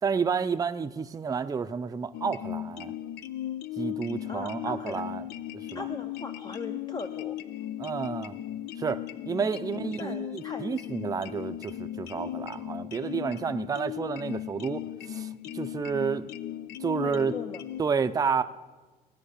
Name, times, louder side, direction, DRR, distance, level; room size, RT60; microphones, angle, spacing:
voice 1, 0.0-2.9 3.8-5.2 5.5-5.8 7.8-8.4 8.8-16.3 16.8-17.3 17.8-18.4, right 6 dB, 20° right, 9 dB, 0.5 m, -30 dB
sound 1, 2.1-17.8, left 12 dB, 80° left, 0.6 m, -37 dB
voice 2, 4.3-5.0 5.7-7.4 9.6-10.7 17.0-17.6, left 4 dB, 25° left, 8 dB, 0.6 m, -39 dB
17.0 x 6.0 x 10.0 m, 1.3 s
cardioid pair, 110°, 17 cm